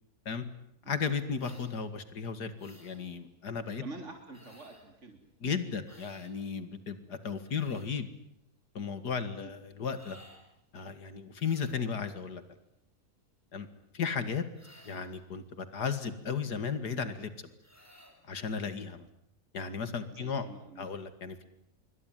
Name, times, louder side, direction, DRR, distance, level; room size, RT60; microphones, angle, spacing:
voice 1, 0.9-3.8 5.4-8.1 8.7-10.2 10.7-12.4 13.5-13.7 13.9-14.4 14.8-17.5 18.3-19.1 19.5-20.4 20.8-21.5, left 6 dB, 85° left, 11 dB, 2.7 m, -35 dB
sound 1, 1.4-1.7 2.6-3.0 4.3-4.9 5.8-6.3 7.2-7.9 9.9-10.4 11.3-11.9 14.5-15.2 17.6-18.2, equal, 10° left, 7.6 m, -57 dB
voice 2, 3.8-5.2 9.4-9.5 20.1-20.9, right 3 dB, 45° right, 4 dB, 4.0 m, -46 dB
26.5 x 24.0 x 9.3 m, 0.76 s
omnidirectional pair, 1.7 m